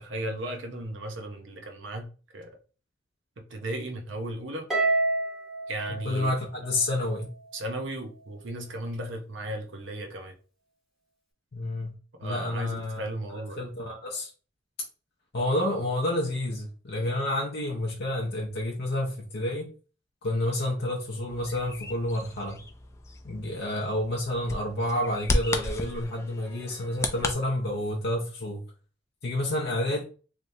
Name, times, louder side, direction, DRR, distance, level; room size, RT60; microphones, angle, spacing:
voice 1, 0.0-2.1 2.3-2.5 3.5-4.7 5.7-6.3 7.5-10.3 12.2-13.7, right 1 dB, 70° right, 0.8 m, -35 dB
Harp, 4.7-7.2, right 2 dB, ahead, 1.0 m, -28 dB
voice 2, 6.0-7.3 11.5-11.9 12.2-13.0 13.3-14.3 15.3-19.7 20.2-22.6 23.2-28.6 29.2-30.0, left 1 dB, 55° left, 0.6 m, -29 dB
Bird vocalization bird call bird song, 21.3-27.3, left 2 dB, 15° left, 0.3 m, -34 dB
3.3 x 3.0 x 2.6 m
head